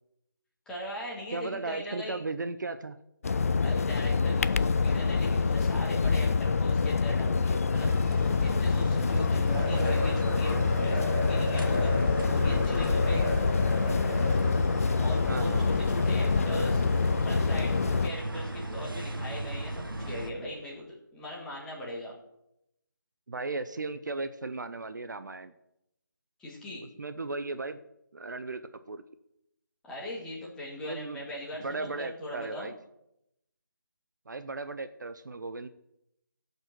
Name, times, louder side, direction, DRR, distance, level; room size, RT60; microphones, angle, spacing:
voice 1, 0.7-2.2 3.6-13.3 15.0-16.8 17.2-17.8 18.0-22.1 26.4-26.9 29.8-32.7, equal, 5° left, -5 dB, 2.2 m, -39 dB
voice 2, 1.3-3.0 12.4-12.7 15.3-15.8 23.3-25.5 27.0-27.8 28.1-29.0 30.8-31.2 31.6-32.8 34.3-35.7, right 3 dB, 60° right, 10 dB, 0.7 m, -36 dB
sound 1, 3.2-18.1, left 4 dB, 45° left, 0.4 m, -26 dB
sound 2, 7.7-20.3, right 2 dB, 85° right, 1.6 m, -36 dB
sound 3, 9.5-14.9, left 1 dB, 30° left, 2.4 m, -35 dB
14.5 x 5.5 x 6.1 m, 0.81 s
figure-of-eight pair, 155°, 11 cm